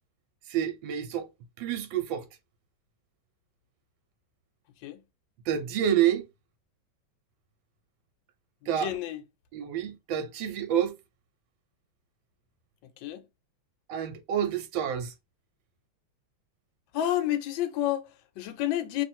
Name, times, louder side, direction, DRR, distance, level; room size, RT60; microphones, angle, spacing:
voice 1, 0.5-1.3 1.6-2.3 5.5-6.2 8.7-8.9 9.5-10.9 13.9-15.1, right 10 dB, 75° right, 1.5 m, -28 dB
voice 2, 8.8-9.2 12.8-13.2 16.9-19.0, left 12 dB, 80° left, 1.3 m, -30 dB
3.1 x 2.5 x 4.2 m
omnidirectional pair, 2.1 m